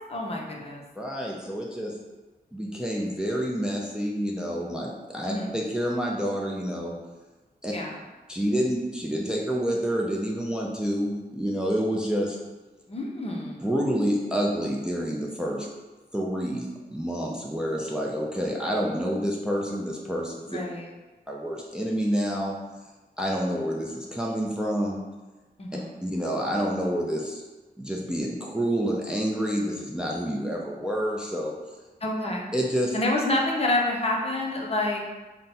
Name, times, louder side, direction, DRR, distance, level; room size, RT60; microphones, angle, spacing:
voice 1, 0.1-0.8 5.2-5.5 7.7-8.0 12.9-13.6 20.5-20.9 25.6-26.0 32.0-32.5 32.9-35.0, left 1 dB, 35° left, -1 dB, 0.7 m, -28 dB
voice 2, 1.0-2.0 2.5-6.9 7.6-7.7 8.3-12.4 13.6-15.7 16.1-20.6 21.3-22.5 23.2-25.0 26.0-27.4 27.8-31.5 32.5-32.9, equal, 5° right, -2 dB, 0.5 m, -28 dB
3.8 x 2.1 x 4.1 m, 1.2 s
cardioid pair, 75°, 17 cm